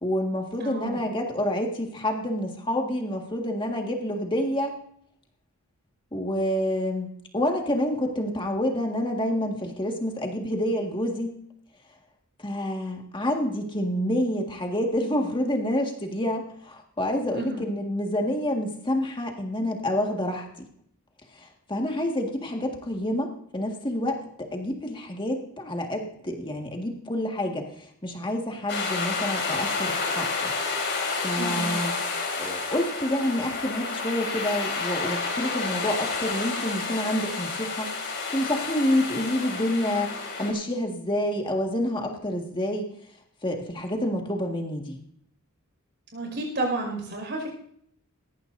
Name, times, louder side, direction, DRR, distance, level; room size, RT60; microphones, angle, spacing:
voice 1, 0.0-4.7 6.1-11.4 12.4-20.5 21.4-30.5 31.2-31.9 32.4-37.9 38.3-42.9 43.4-45.0, left 1 dB, 20° left, 2 dB, 1.8 m, -28 dB
voice 2, 0.6-1.0 17.3-17.7 31.4-31.8 46.1-47.5, right 2 dB, 50° right, 1 dB, 5.5 m, -31 dB
sound 1, 28.7-40.5, left 4 dB, 55° left, 4.0 m, -30 dB
18.0 x 15.0 x 2.7 m, 0.67 s
head